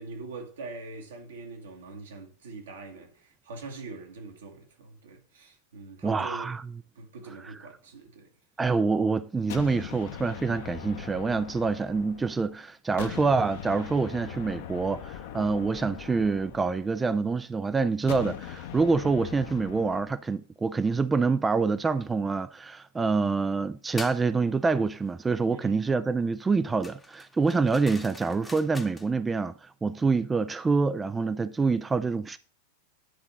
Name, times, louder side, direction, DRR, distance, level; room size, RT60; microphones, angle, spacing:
voice 1, 0.0-6.5 7.0-8.3 25.5-25.8, right 3 dB, 65° right, 1.8 m, -43 dB
voice 2, 6.0-6.6 8.6-32.4, right 4 dB, 15° right, 0.3 m, -26 dB
sound 1, 9.5-12.5 13.0-17.2 18.1-20.2, left 9 dB, 55° left, 0.8 m, -41 dB
sound 2, 24.0-24.3 26.8-29.1, left 3 dB, 10° left, 0.8 m, -44 dB
10.0 x 3.9 x 5.9 m
figure-of-eight pair, 90°, 0 cm